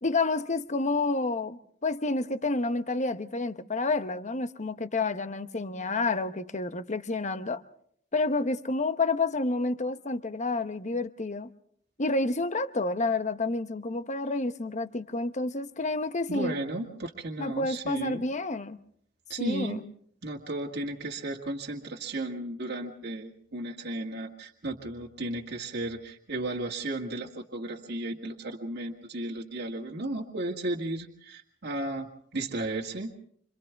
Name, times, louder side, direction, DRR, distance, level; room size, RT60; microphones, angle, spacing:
voice 1, 0.0-7.6 8.1-11.5 12.0-16.5 17.4-18.8 19.4-19.8, left 3 dB, 40° left, 1.0 m, -29 dB
voice 2, 16.3-18.2 19.3-19.8 20.2-33.1, right 2 dB, 60° right, 1.9 m, -34 dB
28.0 x 26.5 x 3.5 m
head